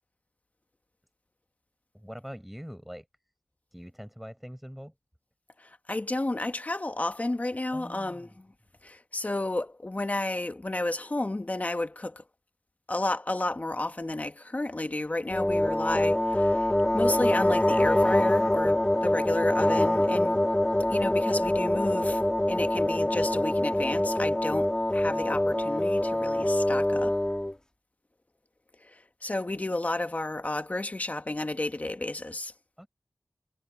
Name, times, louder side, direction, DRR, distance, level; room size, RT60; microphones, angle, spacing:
voice 1, 1.9-3.1 3.7-4.9 7.7-8.3 18.8-18.9 32.8-32.9, equal, 5° right, 5.2 m, -43 dB
voice 2, 5.6-8.5 8.8-12.2 12.9-20.5 20.9-22.2 22.5-27.2 28.8-32.5, left 2 dB, 35° left, 1.7 m, -32 dB
sound 1, 15.3-27.5, left 1 dB, 20° left, 1.7 m, -25 dB
cardioid pair, 45°, 4 cm